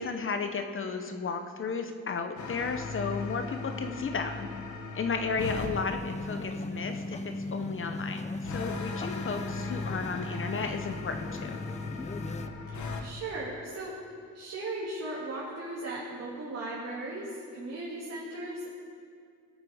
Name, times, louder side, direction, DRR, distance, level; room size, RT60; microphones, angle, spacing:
voice 1, 0.0-4.5 4.9-11.6, left 4 dB, 45° left, 6 dB, 0.8 m, -34 dB
sound 1, 2.4-5.8 8.4-13.0, left 4 dB, 80° left, 1.2 m, -38 dB
sound 2, 5.4-12.5, left 2 dB, 25° left, 0.5 m, -38 dB
voice 2, 12.7-14.0 14.3-18.8, right 2 dB, 60° right, -6 dB, 2.3 m, -37 dB
17.5 x 8.1 x 5.0 m, 2.2 s
cardioid pair, 115°, 29 cm